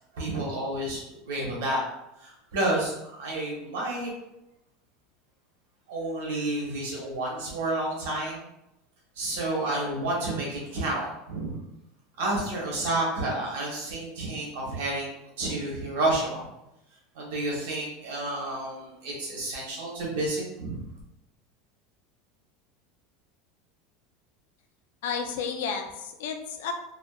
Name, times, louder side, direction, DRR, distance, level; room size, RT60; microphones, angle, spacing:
voice 1, 0.1-1.8 2.2-4.1 5.9-8.5 9.2-11.6 12.2-15.1 15.4-16.4 17.1-20.8, right 2 dB, 85° right, -3 dB, 0.9 m, -30 dB
voice 2, 25.0-26.7, left 6 dB, 80° left, 4 dB, 0.4 m, -32 dB
2.5 x 2.4 x 2.2 m, 0.88 s
supercardioid pair, 165°, 0 cm